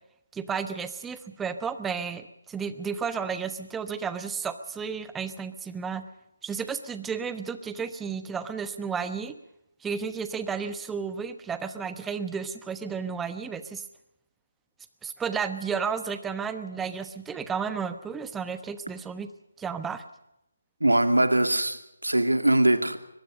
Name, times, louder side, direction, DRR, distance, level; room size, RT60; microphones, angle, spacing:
voice 1, 0.3-6.0 6.4-9.3 9.8-13.8 15.0-19.3 19.6-20.0, right 6 dB, 5° right, 11 dB, 1.1 m, -32 dB
voice 2, 20.8-23.0, right 1 dB, 85° right, 9 dB, 2.4 m, -22 dB
23.5 x 21.5 x 5.3 m, 0.84 s
figure-of-eight pair, 150°, 0 cm